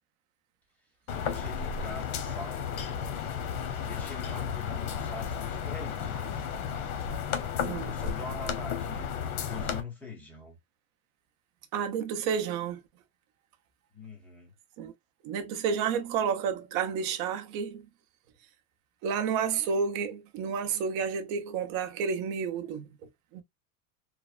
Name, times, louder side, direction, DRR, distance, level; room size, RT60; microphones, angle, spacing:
sound 1, 1.1-9.8, left 7 dB, 75° left, 0.8 m, -33 dB
voice 1, 1.1-3.1 3.8-6.5 7.5-10.6 13.9-14.5, left 4 dB, 5° left, 0.9 m, -43 dB
voice 2, 11.7-12.8 14.8-14.9 15.2-17.9 19.0-22.9 23.3-23.4, right 6 dB, 45° right, 0.6 m, -30 dB
3.2 x 2.0 x 2.3 m
supercardioid pair, 140°, 43 cm